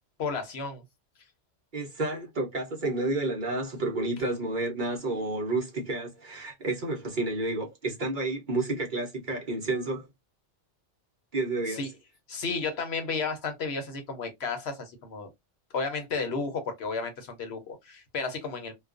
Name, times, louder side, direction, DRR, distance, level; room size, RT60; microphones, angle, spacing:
voice 1, 0.2-0.8 11.7-11.9 12.3-15.3 15.7-18.7, left 4 dB, 65° left, 0.9 m, -33 dB
voice 2, 1.7-10.1 11.3-11.8, right 2 dB, 50° right, 0.8 m, -30 dB
2.3 x 2.3 x 2.4 m
omnidirectional pair, 1.2 m